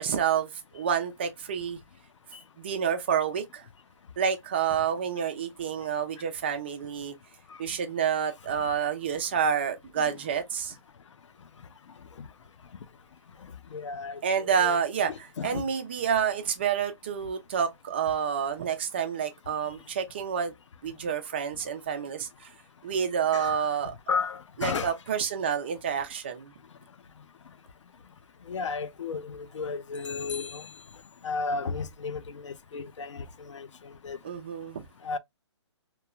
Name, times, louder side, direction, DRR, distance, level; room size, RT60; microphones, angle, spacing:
voice 1, 0.0-1.8 2.6-3.6 4.2-7.1 7.6-10.8 14.2-20.5 20.8-22.5 22.8-23.9 24.6-26.5 34.2-34.8, right 7 dB, 25° right, 0.3 m, -29 dB
voice 2, 13.7-14.8 15.1-15.6 23.3-23.6 24.1-24.9 28.5-30.6 31.2-33.7 34.0-34.2 35.0-35.2, left 4 dB, 85° left, 0.5 m, -33 dB
3.0 x 2.1 x 2.3 m
hypercardioid pair, 165°, 15 cm